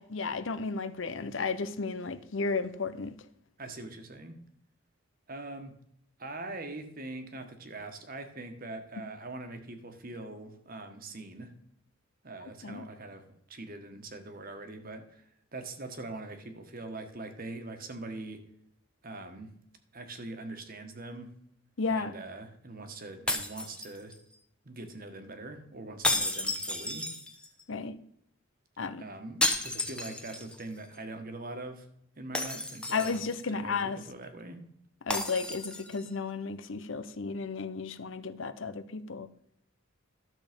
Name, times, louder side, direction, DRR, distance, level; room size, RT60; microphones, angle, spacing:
voice 1, 0.0-3.1 12.6-12.8 21.8-22.1 27.7-28.0 28.8-29.0 32.9-34.0 35.0-39.3, left 4 dB, 65° left, 0.7 m, -33 dB
voice 2, 3.6-4.4 5.3-5.7 6.2-11.5 12.2-18.4 19.0-19.5 19.9-21.3 21.9-24.2 24.6-27.1 29.0-31.9 32.1-33.2 33.5-34.7, right 2 dB, 45° right, 1.5 m, -42 dB
sound 1, 23.3-24.3 26.0-27.6 29.4-30.6 30.9-31.0 32.3-33.4 35.1-36.0, left 1 dB, 5° left, 1.0 m, -32 dB
12.5 x 7.2 x 5.2 m
head